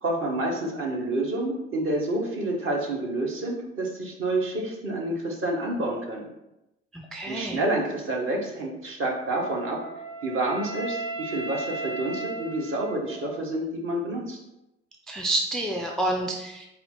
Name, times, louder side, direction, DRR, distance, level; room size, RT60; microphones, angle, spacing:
voice 1, 0.0-6.3 7.3-9.8 10.2-14.4, right 1 dB, 40° right, -1 dB, 1.1 m, -28 dB
voice 2, 6.9-7.7 15.1-16.7, right 1 dB, ahead, 0 dB, 0.3 m, -29 dB
Wind instrument woodwind instrument, 9.3-13.5, right 3 dB, 60° right, 0.7 m, -36 dB
4.3 x 2.2 x 3.9 m, 0.91 s
figure-of-eight pair, 50°, 31 cm